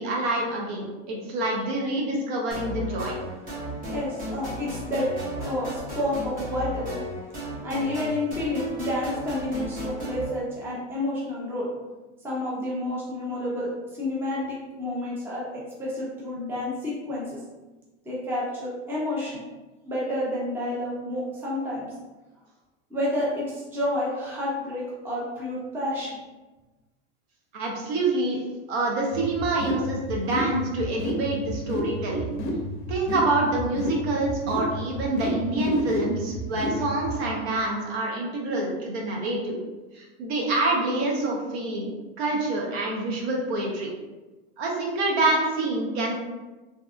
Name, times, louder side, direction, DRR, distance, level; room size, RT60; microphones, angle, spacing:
voice 1, 0.0-3.2 27.5-28.4 28.7-32.3 32.9-39.6 39.9-43.9 44.6-46.2, right 2 dB, 65° right, -1 dB, 0.8 m, -26 dB
sound 1, 2.5-10.2, equal, 25° right, 0.9 m, -34 dB
voice 2, 3.9-5.1 5.4-7.0 7.6-11.7 12.2-17.4 18.0-19.4 19.8-21.9 22.9-26.2, left 1 dB, 5° right, -6 dB, 0.5 m, -30 dB
sound 2, 29.1-37.2, equal, 50° left, 0.5 m, -31 dB
2.8 x 2.2 x 2.4 m, 1.2 s
supercardioid pair, 125°, 35 cm